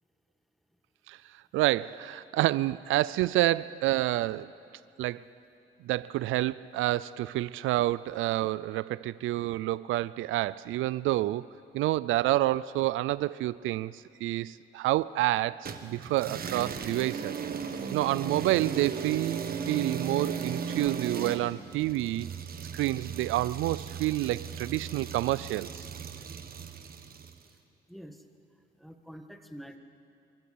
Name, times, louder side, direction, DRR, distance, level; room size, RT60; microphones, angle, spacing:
voice 1, 1.5-4.5 5.0-5.2 5.8-11.5 11.7-17.3 17.9-22.3 22.7-25.9, right 16 dB, 85° right, 0.4 m, -28 dB
sound 1, 15.6-27.4, right 6 dB, 50° right, 1.5 m, -37 dB
voice 2, 27.9-28.2 28.8-29.8, equal, ahead, 1.7 m, -46 dB
25.5 x 14.5 x 8.6 m
cardioid pair, 90°, 20 cm